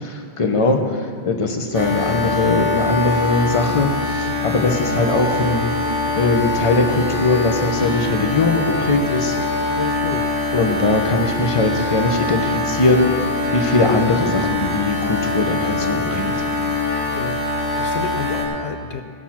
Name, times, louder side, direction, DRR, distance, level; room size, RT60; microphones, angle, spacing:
voice 1, 0.4-0.8 1.2-5.7 6.2-9.4 10.5-16.4, left 3 dB, 35° left, 4 dB, 0.9 m, -20 dB
sound 1, 1.7-18.4, left 2 dB, 20° left, 1.8 m, -23 dB
voice 2, 9.8-10.8 13.8-14.0 17.1-19.0, left 6 dB, 75° left, 7 dB, 0.8 m, -31 dB
16.0 x 6.1 x 5.8 m, 2.2 s
omnidirectional pair, 1.1 m